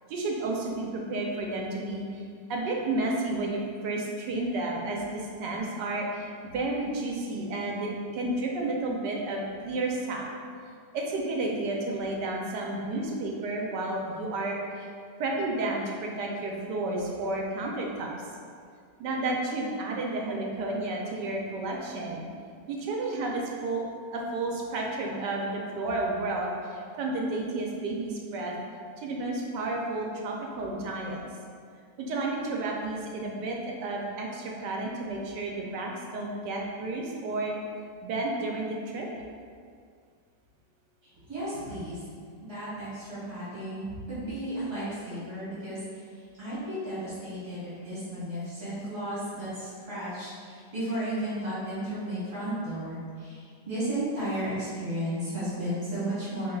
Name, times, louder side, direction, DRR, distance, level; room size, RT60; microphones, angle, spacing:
voice 1, 0.1-2.2 2.5-10.2 10.9-14.9 15.2-18.1 19.0-22.2 22.7-23.8 24.1-28.5 29.0-31.2 32.0-37.5 38.0-39.1, right 2 dB, 80° right, -1 dB, 1.3 m, -31 dB
voice 2, 41.0-42.0 42.4-56.6, right 1 dB, 45° right, -12 dB, 1.8 m, -34 dB
5.2 x 3.4 x 2.3 m, 2.1 s
omnidirectional pair, 1.9 m